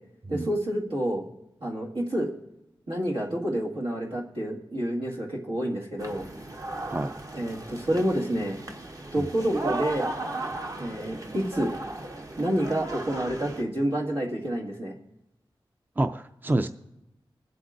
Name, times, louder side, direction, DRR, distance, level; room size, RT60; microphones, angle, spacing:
voice 1, 0.3-1.2 1.6-2.3 2.9-6.3 7.3-8.6 9.1-10.1 10.8-11.7 12.4-14.9, right 1 dB, 80° right, -3 dB, 2.0 m, -28 dB
sound 1, 6.0-13.6, right 2 dB, 40° right, 1.0 m, -36 dB
voice 2, 16.0-16.7, right 2 dB, 20° right, 8 dB, 0.4 m, -27 dB
21.5 x 7.9 x 2.6 m, 0.88 s
wide cardioid pair, 60°, 9 cm